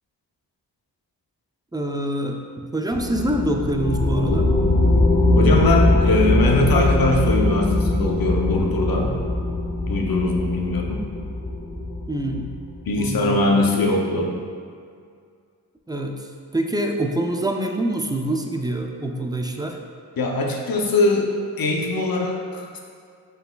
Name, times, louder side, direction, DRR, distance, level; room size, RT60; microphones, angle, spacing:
voice 1, 1.7-4.5 12.1-12.5 13.0-13.7 15.9-16.2 16.5-19.8, right 1 dB, 10° right, 2 dB, 0.4 m, -25 dB
sound 1, 2.9-12.9, left 2 dB, 25° left, 0.7 m, -21 dB
voice 2, 5.4-9.2 9.9-11.1 12.9-14.4 20.2-21.3 21.6-22.8, left 2 dB, 60° left, 1 dB, 0.7 m, -21 dB
5.4 x 4.0 x 2.3 m, 2.2 s
cardioid pair, 45°, 40 cm